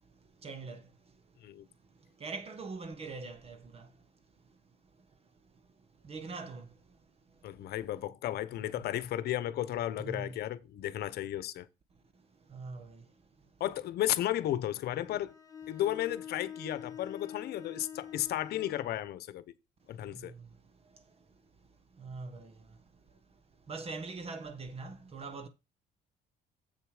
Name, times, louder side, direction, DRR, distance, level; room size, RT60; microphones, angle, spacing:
voice 1, 0.4-1.2 2.0-4.1 4.5-4.6 5.0-5.1 5.5-5.6 6.0-7.0 7.4-7.5 10.0-10.4 12.4-13.5 20.1-21.3 21.9-22.8 23.7-25.5, right 4 dB, 35° right, 1.2 m, -44 dB
voice 2, 7.4-11.7 13.6-15.4 15.7-19.4 19.9-20.3, left 13 dB, 70° left, 0.9 m, -34 dB
Bowed string instrument, 15.0-19.0, left 9 dB, 20° left, 1.4 m, -45 dB
7.9 x 6.8 x 5.0 m
cardioid pair, 110°, 17 cm